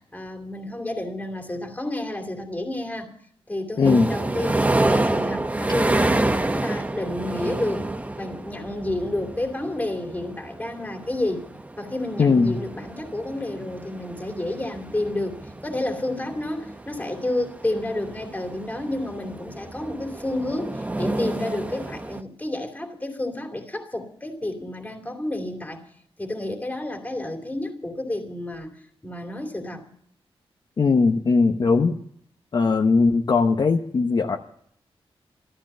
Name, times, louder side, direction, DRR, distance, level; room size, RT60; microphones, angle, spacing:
voice 1, 0.1-3.1 3.5-4.6 4.9-11.5 11.8-25.8 26.2-29.8, left 1 dB, 15° left, 4 dB, 2.9 m, -30 dB
voice 2, 3.8-4.1 12.2-12.5 30.8-32.0 32.5-34.4, left 4 dB, 45° left, 3 dB, 1.0 m, -19 dB
sound 1, 3.8-22.2, right 2 dB, 15° right, 0.8 m, -29 dB
14.0 x 14.0 x 6.8 m, 0.65 s
wide cardioid pair, 135°, 10 cm